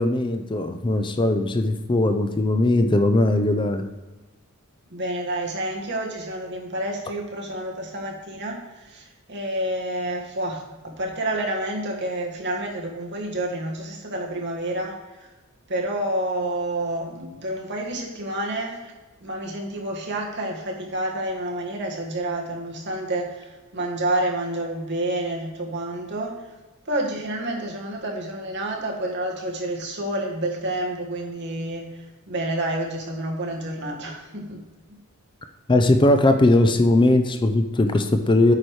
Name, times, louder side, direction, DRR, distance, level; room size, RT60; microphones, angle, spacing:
voice 1, 0.0-3.8 35.7-38.5, left 2 dB, 25° left, 7 dB, 0.5 m, -19 dB
voice 2, 4.9-15.3 15.7-18.9 19.2-26.4 26.8-34.6, right 1 dB, 55° right, 0 dB, 1.7 m, -29 dB
8.5 x 4.9 x 4.7 m, 1.2 s
head